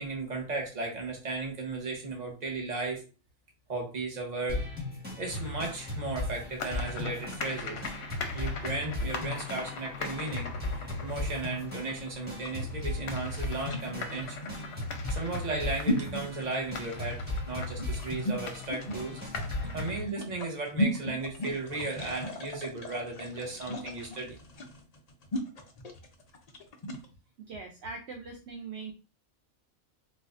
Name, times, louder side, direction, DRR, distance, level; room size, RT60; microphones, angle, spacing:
voice 1, 0.0-3.1 3.7-4.6 5.2-7.9 8.3-14.5 15.1-19.2 19.7-24.4, right 3 dB, 35° right, 0 dB, 0.9 m, -35 dB
sound 1, 4.5-20.0, left 2 dB, 10° right, 1.1 m, -37 dB
sound 2, 5.3-20.0, left 4 dB, 60° left, 0.8 m, -42 dB
sound 3, 12.4-27.1, left 1 dB, 85° left, 0.3 m, -36 dB
voice 2, 27.4-28.9, right 4 dB, 65° right, 2 dB, 0.7 m, -41 dB
3.9 x 2.5 x 2.4 m, 0.33 s
omnidirectional pair, 1.5 m